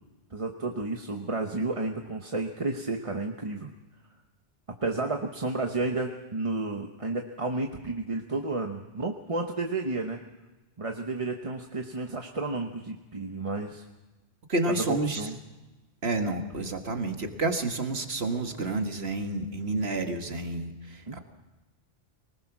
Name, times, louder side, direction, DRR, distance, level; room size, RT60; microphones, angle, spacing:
voice 1, 0.3-3.7 4.8-10.2 10.8-13.9 14.9-15.3 21.1-21.2, right 3 dB, 30° right, 3 dB, 1.0 m, -31 dB
voice 2, 14.5-15.3 16.0-21.2, right 2 dB, 60° right, 5 dB, 2.0 m, -30 dB
24.5 x 19.5 x 6.1 m, 1.1 s
omnidirectional pair, 1.2 m